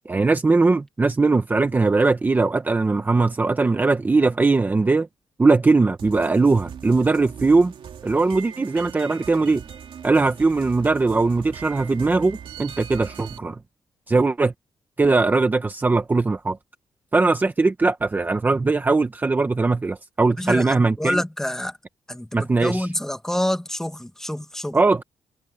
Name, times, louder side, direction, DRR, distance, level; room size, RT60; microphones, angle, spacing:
voice 1, 0.1-5.1 5.4-7.7 8.0-9.6 10.0-13.6 14.1-14.5 15.0-16.6 17.1-21.2 22.3-22.9 24.7-25.0, right 3 dB, 20° right, 0.8 m, -20 dB
sound 1, 6.0-13.4, right 8 dB, 60° right, 2.5 m, -40 dB
voice 2, 20.4-21.8 22.1-24.8, left 1 dB, 5° left, 1.4 m, -27 dB
wide cardioid pair, 165°, 10 cm